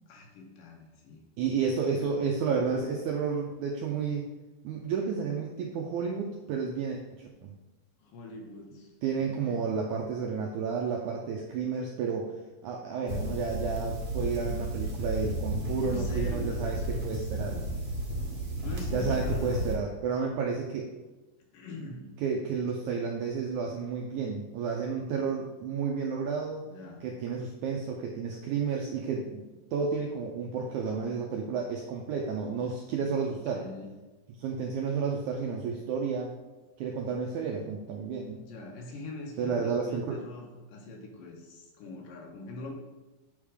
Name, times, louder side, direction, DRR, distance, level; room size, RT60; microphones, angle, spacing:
voice 1, 0.1-1.2 2.0-2.1 8.0-8.9 9.2-9.7 15.8-17.6 18.6-19.5 21.5-22.1 26.6-27.1 33.2-33.9 38.3-42.7, left 2 dB, 75° left, 0 dB, 2.6 m, -43 dB
voice 2, 1.4-4.3 4.6-7.5 9.0-12.3 12.6-17.6 18.9-20.9 22.2-26.6 27.0-29.4 29.7-33.6 34.4-36.4 36.8-38.4 39.4-40.2, right 5 dB, 85° right, 0 dB, 1.7 m, -31 dB
sound 1, 13.1-19.8, equal, 45° right, 1.9 m, -33 dB
8.1 x 3.6 x 4.9 m, 1.1 s
omnidirectional pair, 4.1 m